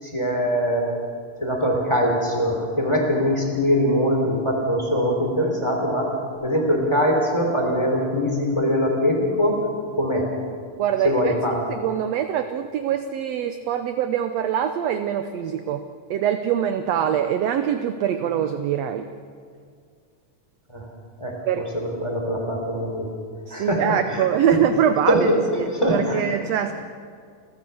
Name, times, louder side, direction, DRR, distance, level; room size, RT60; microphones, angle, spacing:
voice 1, 0.0-0.9 1.4-6.1 6.4-9.6 10.0-10.3 11.0-11.5 20.7-20.8 21.2-21.3 22.0-23.1 23.5-23.8 24.1-24.2 25.1-25.4 25.7-26.2, equal, 10° left, 0 dB, 3.5 m, -22 dB
voice 2, 10.8-11.3 11.7-19.1 21.5-21.6 23.5-26.7, right 9 dB, 70° right, 8 dB, 1.6 m, -24 dB
29.5 x 14.0 x 7.1 m, 2.1 s
omnidirectional pair, 3.6 m